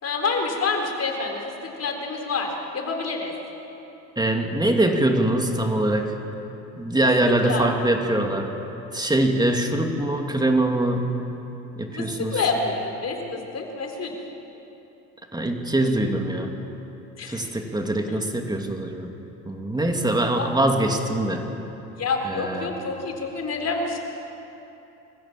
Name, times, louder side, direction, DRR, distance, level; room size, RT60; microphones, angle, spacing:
voice 1, 0.0-3.3 7.3-7.7 12.0-14.1 17.2-17.4 18.1-18.2 20.3-20.7 22.0-24.0, left 4 dB, 45° left, 2 dB, 4.2 m, -28 dB
voice 2, 4.2-6.1 6.8-8.5 8.9-11.1 11.8-12.4 15.3-16.5 17.3-19.1 19.5-21.4 22.2-22.7, right 1 dB, 10° right, 3 dB, 2.5 m, -23 dB
24.5 x 15.5 x 7.4 m, 3.0 s
supercardioid pair, 90°, 36 cm